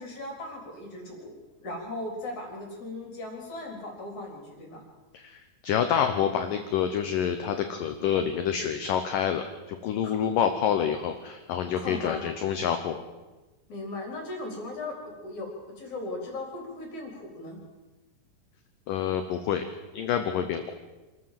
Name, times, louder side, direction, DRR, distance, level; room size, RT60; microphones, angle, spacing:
voice 1, 0.0-4.8 10.0-10.2 11.8-12.2 13.7-17.6, left 2 dB, 45° left, 1 dB, 4.9 m, -38 dB
voice 2, 5.1-13.0 18.9-19.6 19.9-20.7, left 8 dB, 70° left, 7 dB, 2.1 m, -27 dB
26.0 x 14.0 x 7.7 m, 1.2 s
omnidirectional pair, 5.1 m